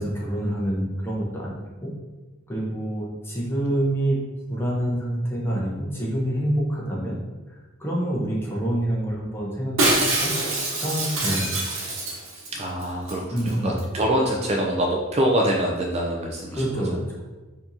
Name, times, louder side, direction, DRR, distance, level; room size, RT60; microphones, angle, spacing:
voice 1, 0.0-1.6 1.8-1.9 2.5-4.2 4.5-7.2 7.8-10.3 10.8-11.6 13.3-13.8 16.5-17.2, right 1 dB, 10° left, -4 dB, 0.7 m, -26 dB
Shatter, 9.8-12.5 12.8-12.9 13.1-13.5 13.8-13.9, right 2 dB, 80° right, 1.0 m, -25 dB
voice 2, 12.5-17.0, right 1 dB, 30° right, -1 dB, 0.4 m, -25 dB
4.4 x 2.8 x 2.6 m, 1.2 s
head